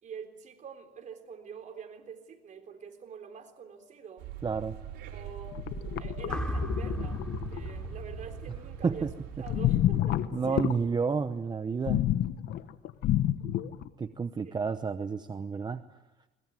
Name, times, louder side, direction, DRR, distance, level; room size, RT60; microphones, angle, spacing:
voice 1, 0.0-4.3 5.1-5.6 6.0-7.2 7.5-9.1 9.4-10.7 14.4-14.5, right 6 dB, 45° right, 4 dB, 3.7 m, -46 dB
sound 1, 4.2-9.7, right 10 dB, 80° right, 4.4 m, -42 dB
voice 2, 4.4-4.8 8.8-8.9 10.3-12.0 14.0-15.8, right 5 dB, 25° right, 10 dB, 0.8 m, -30 dB
sound 2, 5.5-7.7 9.5-10.8 11.9-13.9, left 12 dB, 75° left, 1.1 m, -29 dB
sound 3, 6.3-10.5, equal, 5° left, 3.8 m, -37 dB
21.5 x 21.0 x 9.3 m, 1.1 s
cardioid pair, 110°, 17 cm